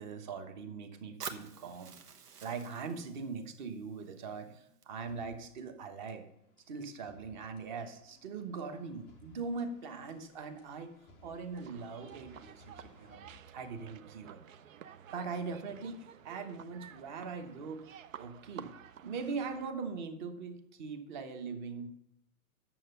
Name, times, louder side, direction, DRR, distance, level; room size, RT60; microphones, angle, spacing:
voice 1, 0.0-2.0 2.4-6.3 6.7-10.9 11.2-13.3 13.5-14.4 15.1-16.0 16.2-17.9 18.2-18.7 19.0-21.9, right 5 dB, 30° right, 7 dB, 1.1 m, -41 dB
Fire, 1.2-5.2, right 6 dB, 80° right, 1.4 m, -49 dB
sound 1, 5.1-14.0, left 1 dB, 5° left, 0.5 m, -62 dB
sound 2, 11.6-19.7, right 9 dB, 60° right, 0.7 m, -52 dB
9.1 x 6.9 x 6.8 m, 0.81 s
hypercardioid pair, 150°, 46 cm